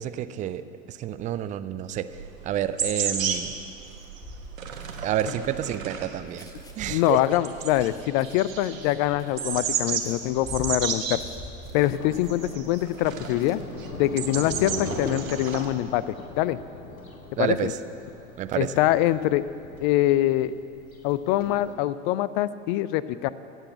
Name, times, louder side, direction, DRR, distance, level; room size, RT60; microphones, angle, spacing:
voice 1, 0.0-2.1 2.4-3.5 5.0-6.5 6.8-7.2 17.4-17.8 18.4-18.7, right 11 dB, 20° right, 12 dB, 0.4 m, -29 dB
sound 1, 2.1-15.7, right 7 dB, 75° right, 1.3 m, -33 dB
sound 2, 3.7-13.8 14.2-14.5, left 1 dB, 10° left, 1.1 m, -47 dB
voice 2, 6.9-11.2 11.7-13.6 14.0-16.6 17.3-17.7 18.6-19.4 19.8-20.5 21.0-23.3, left 14 dB, 40° left, 17 dB, 0.5 m, -24 dB
Thunder, 11.7-21.7, left 2 dB, 80° left, 1.8 m, -40 dB
16.5 x 8.2 x 7.8 m, 2.6 s
figure-of-eight pair, 80°, 41 cm